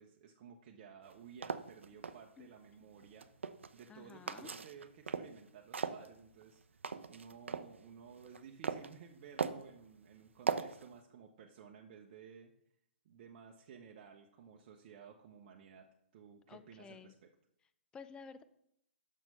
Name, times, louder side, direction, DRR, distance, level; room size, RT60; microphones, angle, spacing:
voice 1, 0.0-3.3 3.7-6.8 7.1-12.5 13.0-17.1, right 7 dB, 40° right, 2 dB, 0.8 m, -55 dB
sound 1, 1.0-2.2 3.0-3.9 4.3-5.4 5.7-7.7 8.2-8.9 9.4-9.7 10.5-10.9, right 5 dB, 75° right, 0.5 m, -38 dB
voice 2, 3.9-4.5 16.5-17.1 17.9-18.4, left 5 dB, 10° left, 12 dB, 0.4 m, -52 dB
6.2 x 6.0 x 5.6 m, 0.74 s
figure-of-eight pair, 125°, 7 cm